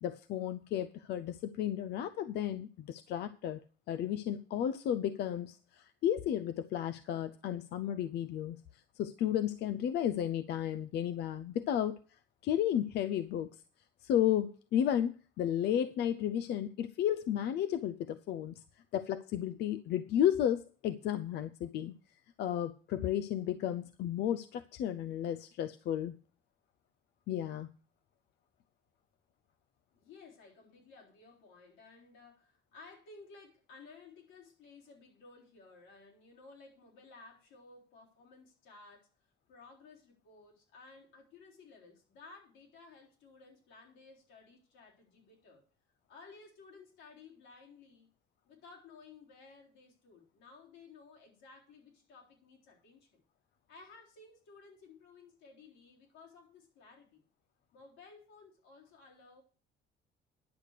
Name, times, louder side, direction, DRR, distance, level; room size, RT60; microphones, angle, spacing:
voice 1, 0.0-3.6 3.9-12.0 12.4-13.5 14.0-18.6 18.9-21.9 22.4-26.2 27.3-27.7, left 10 dB, 65° left, 10 dB, 0.5 m, -33 dB
voice 2, 29.9-39.1 39.5-45.6 46.1-48.1 48.4-53.2 53.7-57.2 57.7-59.4, left 4 dB, 90° left, -2 dB, 3.9 m, -56 dB
10.5 x 6.6 x 6.6 m, 0.41 s
cardioid pair, 145°, 19 cm